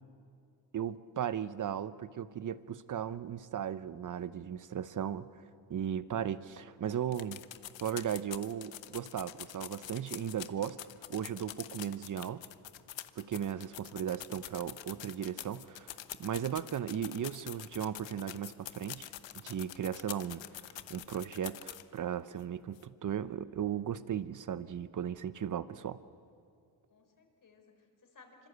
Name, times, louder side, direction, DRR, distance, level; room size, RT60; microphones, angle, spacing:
voice 1, 0.7-5.3 5.7-7.4 7.8-10.8 11.1-12.4 13.2-20.4 20.9-26.0, right 9 dB, 45° right, 15 dB, 0.9 m, -36 dB
sound 1, 7.1-22.0 22.4-22.5 22.8-22.9, left 13 dB, 75° left, 1.1 m, -45 dB
voice 2, 11.6-12.1 26.9-28.5, left 4 dB, 45° left, 4 dB, 4.6 m, -61 dB
25.5 x 25.5 x 8.1 m, 2.5 s
cardioid pair, 105°, 45 cm